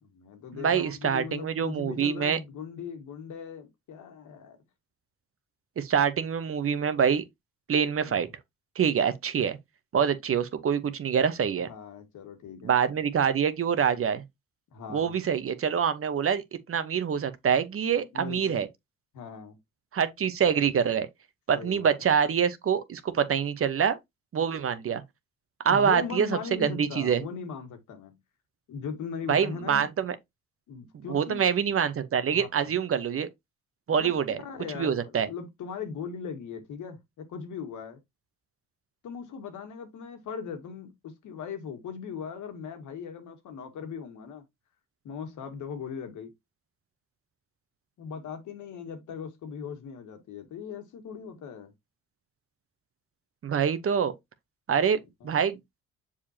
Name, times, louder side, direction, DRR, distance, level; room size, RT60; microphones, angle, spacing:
voice 1, 0.0-4.6 8.0-8.3 11.7-12.7 14.7-15.2 18.1-18.6 19.1-19.6 21.5-21.9 25.7-28.2 28.7-29.9 30.7-31.4 32.3-32.5 33.9-38.0 39.0-44.4 45.0-46.3 48.0-51.7 55.2-55.3, left 6 dB, 75° left, 1.8 m, -39 dB
voice 2, 0.5-2.4 5.8-7.2 7.7-8.3 8.8-9.6 9.9-11.7 12.6-14.2 14.9-16.4 16.7-18.7 19.9-21.1 21.5-24.0 24.3-25.0 25.6-26.3 26.6-27.2 29.3-30.1 31.1-33.3 33.9-34.4 34.7-35.3 53.4-54.1 54.7-55.6, right 7 dB, 45° right, 1.0 m, -25 dB
6.9 x 4.9 x 2.8 m
cardioid pair, 90°, 30 cm